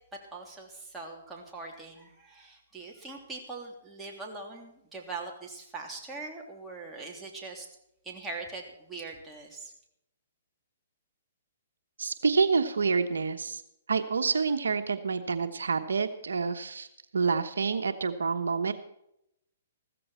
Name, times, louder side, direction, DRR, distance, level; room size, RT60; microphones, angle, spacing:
voice 1, 0.3-7.7 8.0-9.7, right 3 dB, 10° right, -1 dB, 3.2 m, -42 dB
voice 2, 12.0-13.6 13.9-16.9 17.1-18.7, right 5 dB, 85° right, 8 dB, 1.1 m, -28 dB
15.0 x 14.5 x 4.5 m, 0.80 s
hypercardioid pair, 140°, 0 cm